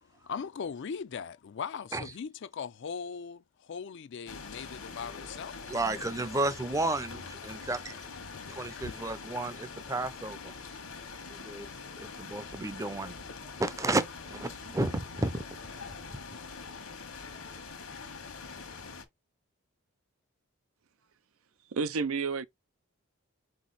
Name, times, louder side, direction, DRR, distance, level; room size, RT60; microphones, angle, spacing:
voice 1, 0.0-5.6 8.3-9.0, left 6 dB, 55° left, 0.4 m, -40 dB
sound 1, 4.3-19.0, left 4 dB, 80° left, 1.3 m, -44 dB
voice 2, 5.7-8.0 8.5-10.5 11.3-11.7 12.0-14.0 14.3-15.4 16.1-16.2, right 2 dB, 15° right, 0.5 m, -32 dB
voice 3, 21.7-22.5, right 4 dB, 75° right, 0.5 m, -30 dB
4.5 x 3.0 x 4.0 m
head